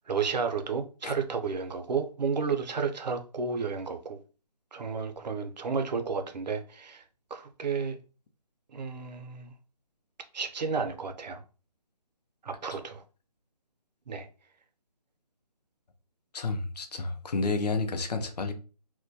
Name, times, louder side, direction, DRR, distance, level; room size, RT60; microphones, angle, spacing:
voice 1, 0.1-4.2 4.7-7.0 7.3-8.0 8.7-9.5 10.3-11.4 12.4-13.0 14.1-14.3, right 5 dB, 85° right, 0.5 m, -32 dB
voice 2, 16.3-18.5, left 3 dB, 75° left, 0.5 m, -30 dB
2.1 x 2.1 x 2.6 m
hypercardioid pair, 170°, 21 cm